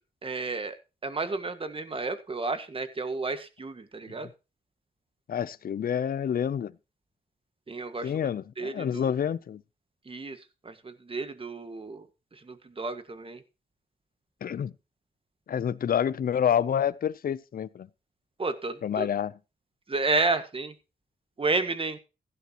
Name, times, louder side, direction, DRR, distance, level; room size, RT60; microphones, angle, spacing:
voice 1, 0.2-0.8 1.0-4.3 7.7-8.1 8.6-9.1 10.1-10.4 10.6-12.1 12.4-13.4 18.4-19.1 19.9-20.7 21.4-22.0, right 3 dB, 35° right, 1.8 m, -31 dB
voice 2, 5.3-6.7 8.0-9.6 14.4-14.7 15.5-17.9 18.8-19.3, left 8 dB, 60° left, 0.6 m, -28 dB
16.0 x 11.0 x 3.0 m
wide cardioid pair, 100°, 17 cm